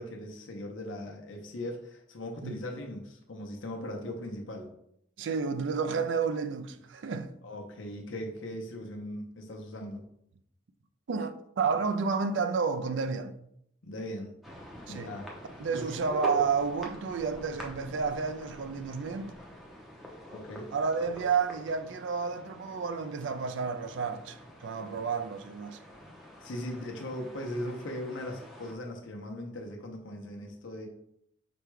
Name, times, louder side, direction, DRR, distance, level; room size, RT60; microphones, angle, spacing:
voice 1, 0.0-4.7 7.4-10.1 13.8-14.3 14.9-15.3 15.7-16.2 20.3-20.7 26.4-30.9, left 1 dB, 90° left, 0.8 m, -39 dB
voice 2, 5.2-7.3 11.1-13.4 14.9-15.1 15.6-19.3 20.7-25.8 26.7-26.8, right 5 dB, 75° right, 0.4 m, -31 dB
sound 1, 14.4-28.7, equal, ahead, 0.7 m, -46 dB
5.1 x 2.3 x 4.6 m
head